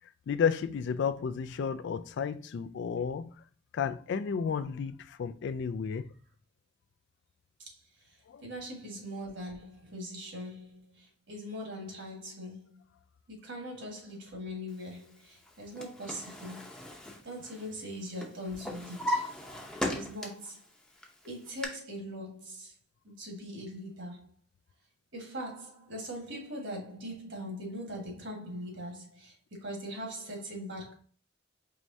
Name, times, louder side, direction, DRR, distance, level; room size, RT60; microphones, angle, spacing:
voice 1, 0.3-3.3 3.7-6.1 8.3-8.4, left 6 dB, 60° left, 0.3 m, -32 dB
voice 2, 8.0-12.8 13.3-16.7 17.2-19.3 19.9-20.6 21.2-22.7 23.0-24.3 25.1-30.9, equal, 65° right, 1.5 m, -41 dB
Drawer open or close, 15.5-17.9 18.2-20.5 21.0-21.7, left 1 dB, 5° left, 0.6 m, -37 dB
4.7 x 3.1 x 2.6 m
head